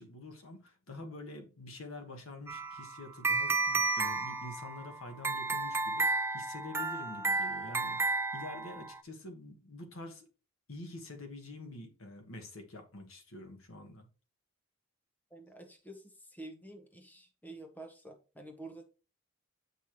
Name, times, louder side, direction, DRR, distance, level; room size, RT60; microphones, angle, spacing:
voice 1, 0.0-10.3 10.7-14.1, left 2 dB, 75° left, 1.5 m, -47 dB
sound 1, 2.5-9.0, right 3 dB, 10° right, 0.4 m, -32 dB
voice 2, 15.3-16.0 16.3-18.8, right 2 dB, 10° left, 1.0 m, -49 dB
8.2 x 5.5 x 3.1 m
head